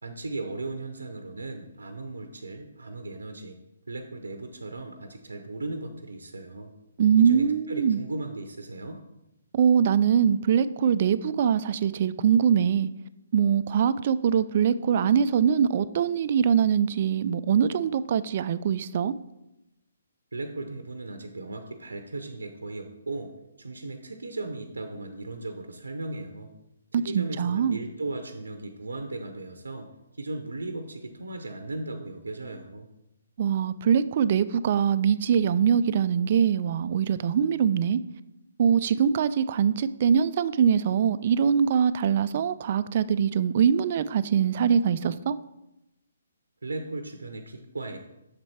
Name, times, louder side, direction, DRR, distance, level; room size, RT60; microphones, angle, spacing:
voice 1, 0.0-3.6 3.9-6.7 7.2-9.0 20.3-23.3 23.6-26.5 26.9-29.9 30.1-32.9 46.6-48.0, right 2 dB, 90° right, 6 dB, 0.6 m, -37 dB
voice 2, 7.0-8.0 9.5-12.9 13.3-19.1 26.9-27.8 33.4-38.0 38.6-45.4, right 7 dB, 45° right, 14 dB, 0.3 m, -23 dB
6.7 x 4.5 x 4.3 m, 0.92 s
hypercardioid pair, 145°, 0 cm